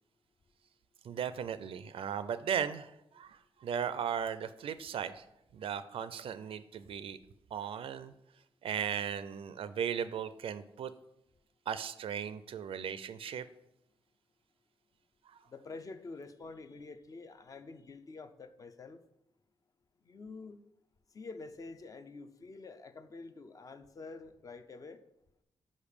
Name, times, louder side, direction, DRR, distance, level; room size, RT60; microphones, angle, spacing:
voice 1, 1.0-5.3 5.5-7.2 7.5-8.1 8.6-10.9 11.7-13.5 15.3-15.4, right 8 dB, 70° right, 0.4 m, -37 dB
voice 2, 15.5-19.0 20.0-20.6 21.1-25.0, left 3 dB, 35° left, 0.5 m, -47 dB
5.4 x 5.1 x 6.6 m
wide cardioid pair, 155°, 10 cm